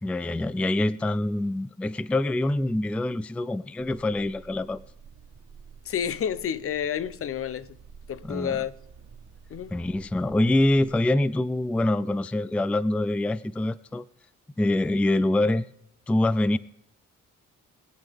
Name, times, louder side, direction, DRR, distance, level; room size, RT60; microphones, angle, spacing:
voice 1, 0.0-4.8 8.2-8.6 9.7-14.0 14.6-15.7 16.1-16.6, left 1 dB, 5° left, 0.3 m, -25 dB
sound 1, 3.8-11.2, right 6 dB, 55° right, 1.7 m, -50 dB
voice 2, 5.9-7.7 8.1-8.7 9.5-9.7, left 8 dB, 50° left, 0.7 m, -29 dB
22.5 x 8.3 x 3.5 m
cardioid pair, 90°, 30 cm